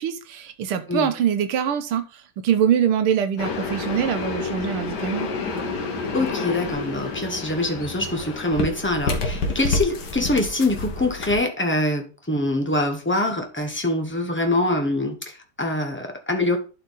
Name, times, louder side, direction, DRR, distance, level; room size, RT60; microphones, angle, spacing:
voice 1, 0.0-5.3, right 8 dB, 85° right, 10 dB, 1.8 m, -24 dB
sound 1, 3.4-11.3, left 3 dB, 55° left, 1.7 m, -29 dB
voice 2, 6.1-16.6, left 1 dB, 10° left, 4 dB, 0.7 m, -24 dB
11.5 x 4.6 x 4.0 m, 0.33 s
omnidirectional pair, 2.4 m